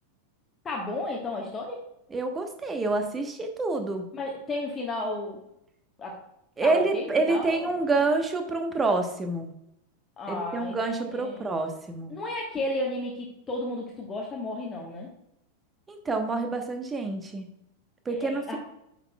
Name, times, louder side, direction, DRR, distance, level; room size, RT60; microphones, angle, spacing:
voice 1, 0.6-1.8 4.1-5.4 6.0-6.2 6.6-7.7 10.2-11.5 12.1-15.1 18.1-18.6, left 2 dB, 20° left, -2 dB, 1.3 m, -33 dB
voice 2, 2.1-4.0 6.6-9.5 10.3-12.1 15.9-17.5 18.0-18.6, right 3 dB, 15° right, 6 dB, 1.1 m, -27 dB
9.5 x 6.0 x 2.3 m, 0.80 s
figure-of-eight pair, 90°, 0 cm